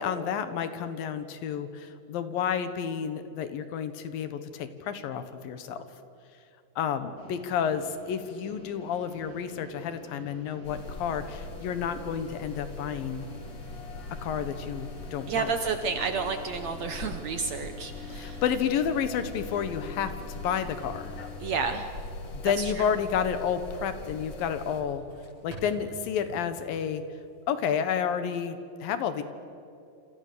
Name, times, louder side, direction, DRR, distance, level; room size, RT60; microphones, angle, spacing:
voice 1, 0.0-5.8 6.8-13.3 14.2-15.5 18.1-20.1 20.4-21.1 22.3-25.0 25.4-27.0 27.5-29.2, left 8 dB, 75° left, 10 dB, 3.0 m, -30 dB
sound 1, 7.2-21.2, left 1 dB, 25° right, 3.4 m, -48 dB
sound 2, 10.6-24.8, left 2 dB, 50° left, 3.2 m, -41 dB
sound 3, 14.9-27.4, equal, 40° right, 7.9 m, -54 dB
voice 2, 15.3-18.4 21.4-21.9 22.4-22.9, right 5 dB, 65° right, 7 dB, 1.8 m, -31 dB
27.5 x 27.5 x 6.9 m, 2.6 s
omnidirectional pair, 4.2 m